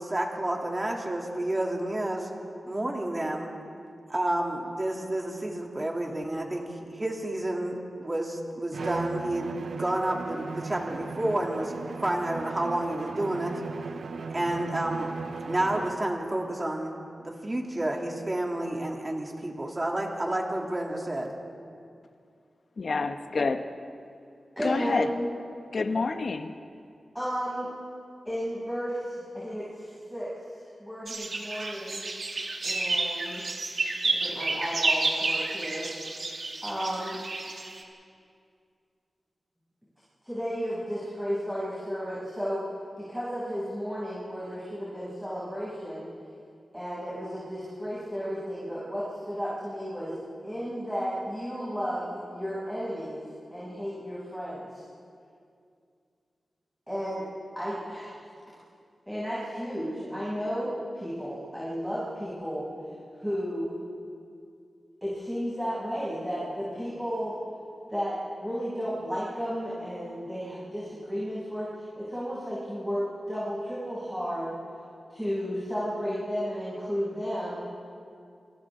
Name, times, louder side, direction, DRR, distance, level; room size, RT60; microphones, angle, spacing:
voice 1, 0.0-2.3 2.7-3.5 4.1-9.5 9.8-11.7 12.0-13.5 14.3-15.2 15.5-21.3, right 1 dB, 25° right, -1 dB, 3.1 m, -30 dB
Bowed string instrument, 8.7-16.1, right 5 dB, 80° right, 0.8 m, -37 dB
voice 2, 22.8-23.7 24.6-25.1 25.7-26.5, left 4 dB, 55° left, 8 dB, 1.1 m, -28 dB
voice 3, 24.6-25.3 27.1-27.7 28.3-30.4 30.8-32.1 32.6-33.5 34.0-35.9 36.6-37.2 40.2-42.6 43.0-46.1 46.7-50.1 50.4-53.2 53.5-54.8 56.9-57.3 57.6-58.2 59.1-62.7 63.2-63.8 65.0-67.3 67.9-74.5 75.1-77.6, equal, ahead, -10 dB, 7.1 m, -33 dB
sound 1, 31.1-37.8, right 3 dB, 60° right, 2.7 m, -30 dB
28.0 x 26.5 x 3.8 m, 2.4 s
wide cardioid pair, 110°, 0 cm